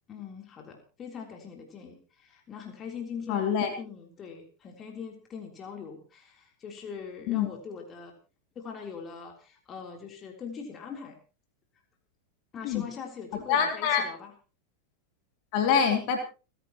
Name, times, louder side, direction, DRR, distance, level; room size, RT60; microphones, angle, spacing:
voice 1, 0.1-8.1 8.6-11.2 12.5-14.3, left 6 dB, 25° left, 2 dB, 3.6 m, -42 dB
voice 2, 3.3-3.7 7.3-7.5 12.6-12.9 13.5-14.0 15.5-16.2, left 7 dB, 45° left, 3 dB, 3.6 m, -25 dB
30.0 x 11.0 x 3.1 m, 0.33 s
figure-of-eight pair, 90°, 0 cm